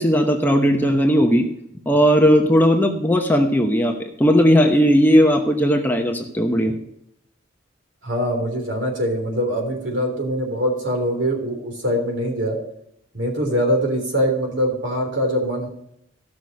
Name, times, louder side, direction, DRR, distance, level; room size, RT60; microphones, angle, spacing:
voice 1, 0.0-1.5 1.9-6.8, equal, 10° left, 3 dB, 1.0 m, -17 dB
voice 2, 8.0-12.6 13.1-15.7, equal, 65° right, 2 dB, 3.4 m, -23 dB
15.0 x 6.2 x 5.3 m, 0.74 s
head